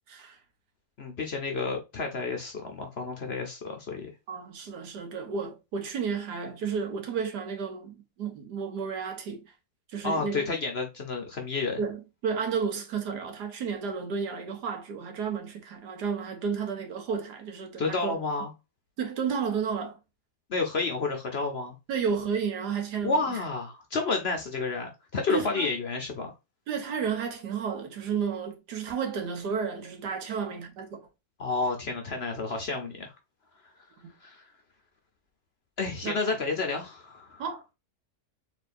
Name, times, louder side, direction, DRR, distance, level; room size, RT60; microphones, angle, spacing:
voice 1, 0.1-0.4 4.3-9.4 9.9-10.5 11.8-18.2 19.0-20.0 21.9-23.4 25.3-25.7 26.7-31.0 36.0-36.4 37.4-37.7, right 6 dB, 80° right, 1.6 m, -32 dB
voice 2, 1.0-4.1 10.0-11.8 17.8-18.5 20.5-21.8 23.0-26.3 31.4-33.1 34.2-34.4 35.8-37.4, left 3 dB, 50° left, 0.9 m, -30 dB
4.3 x 3.7 x 2.5 m
omnidirectional pair, 1.8 m